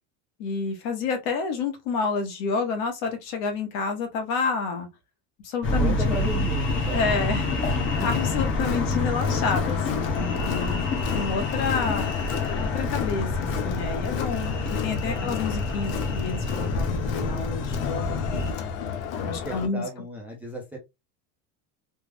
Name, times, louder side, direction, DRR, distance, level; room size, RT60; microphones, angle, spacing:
voice 1, 0.4-4.9 5.4-6.1 6.9-7.5 7.7-12.1 12.6-18.5 19.2-19.8, left 4 dB, 60° left, 1.2 m, -29 dB
sound 1, 5.6-18.5, left 3 dB, 30° left, 0.8 m, -27 dB
voice 2, 5.8-7.2 8.1-8.2 10.5-11.0 15.2-15.4 19.4-20.8, equal, 5° right, 0.5 m, -35 dB
Crowd, 7.9-19.7, left 7 dB, 85° left, 0.9 m, -33 dB
3.4 x 2.0 x 3.4 m
cardioid pair, 165°, 39 cm